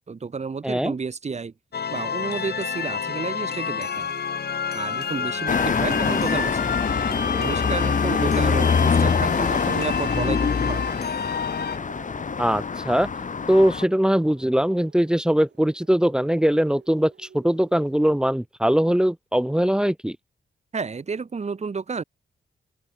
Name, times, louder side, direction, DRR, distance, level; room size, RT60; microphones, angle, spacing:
voice 1, 0.1-1.5 1.9-4.1 4.7-6.8 7.4-11.0 20.7-22.0, right 5 dB, 35° right, 2.4 m, -31 dB
voice 2, 0.6-0.9 12.4-13.1 13.5-20.2, equal, 5° right, 1.4 m, -21 dB
sound 1, 1.7-11.8, left 7 dB, 55° left, 3.7 m, -29 dB
sound 2, 2.0-17.9, right 7 dB, 65° right, 7.4 m, -45 dB
sound 3, 5.5-13.9, left 5 dB, 40° left, 2.1 m, -24 dB
wide cardioid pair, 150°, 19 cm